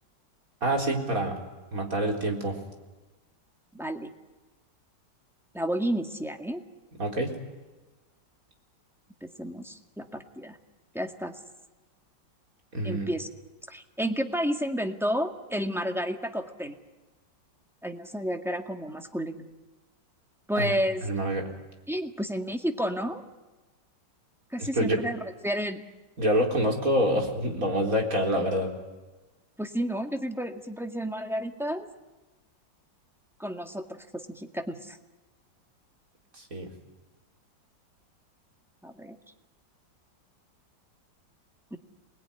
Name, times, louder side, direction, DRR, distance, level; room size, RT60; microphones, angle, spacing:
voice 1, 0.6-1.4 1.7-2.6 7.0-7.4 12.7-13.1 20.5-20.7 21.0-21.5 24.6-25.0 26.2-28.7 36.3-36.7, right 1 dB, 50° right, 1 dB, 4.4 m, -26 dB
voice 2, 3.7-4.1 5.5-6.6 9.2-10.6 10.9-11.4 12.8-13.3 13.7-16.8 17.8-19.5 20.5-21.0 21.9-23.2 24.5-25.8 29.6-31.9 33.4-35.0 38.8-39.2 41.7-41.8, equal, ahead, 5 dB, 1.8 m, -31 dB
28.0 x 21.0 x 10.0 m, 1.2 s
omnidirectional pair, 2.0 m